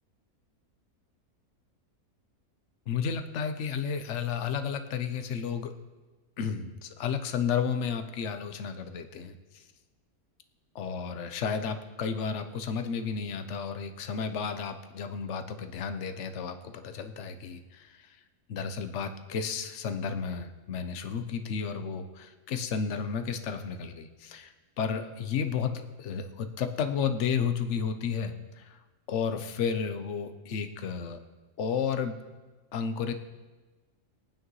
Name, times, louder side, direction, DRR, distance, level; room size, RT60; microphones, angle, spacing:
voice 1, 2.9-5.7 6.4-9.6 10.7-18.2 18.5-28.8 29.1-31.2 31.6-32.1 32.7-33.1, left 6 dB, 55° left, 8 dB, 1.0 m, -32 dB
22.0 x 9.1 x 3.1 m, 1.3 s
omnidirectional pair, 1.6 m